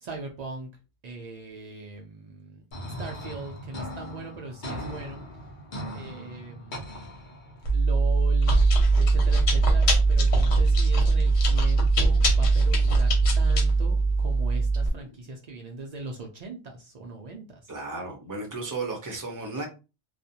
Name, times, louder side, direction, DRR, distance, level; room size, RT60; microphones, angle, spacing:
voice 1, 0.0-0.7 1.0-2.6 3.0-5.2 5.9-7.2 7.7-8.6 9.0-17.7, right 3 dB, 90° right, 1 dB, 0.3 m, -40 dB
sound 1, 2.7-7.7, equal, 45° left, 0.7 m, -39 dB
Chewing mastication, 7.6-14.9, right 3 dB, 80° left, 1.1 m, -21 dB
voice 2, 17.7-19.7, right 3 dB, 25° right, 1 dB, 0.4 m, -34 dB
2.4 x 2.1 x 2.7 m, 0.30 s
omnidirectional pair, 1.3 m